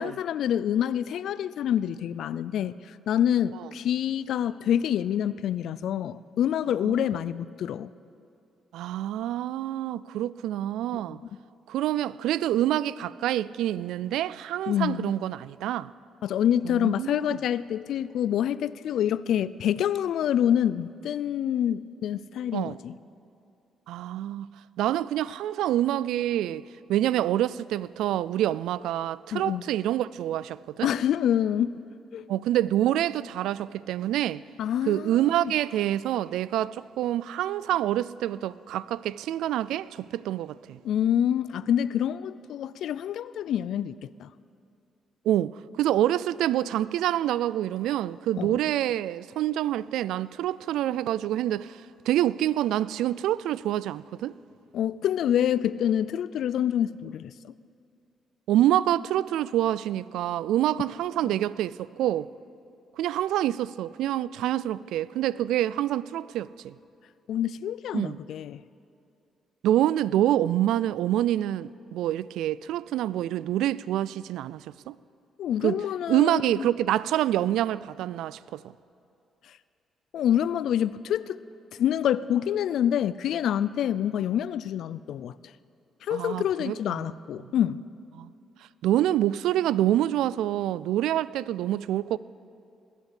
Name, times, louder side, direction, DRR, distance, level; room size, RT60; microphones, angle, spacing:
voice 1, 0.0-2.7 3.1-7.9 10.9-11.2 14.7-15.1 16.2-22.9 29.3-29.6 30.8-31.8 32.1-32.2 34.6-35.5 40.8-44.3 48.4-48.6 54.7-57.5 61.2-61.3 67.3-68.6 75.4-76.6 80.1-81.4 81.7-85.3 86.0-87.8, left 10 dB, 75° left, 0.4 m, -27 dB
voice 2, 8.7-11.2 11.7-15.9 16.6-17.2 22.5-22.8 23.9-26.6 26.9-30.9 32.3-34.4 34.9-40.8 45.3-54.3 58.5-62.3 63.0-66.7 67.9-68.2 69.6-75.0 75.6-75.8 76.1-78.6 86.1-87.1 87.4-87.5 88.2-88.3 88.8-92.2, right 12 dB, 85° right, 0.3 m, -27 dB
20.0 x 8.2 x 8.3 m
cardioid pair, 90°, 0 cm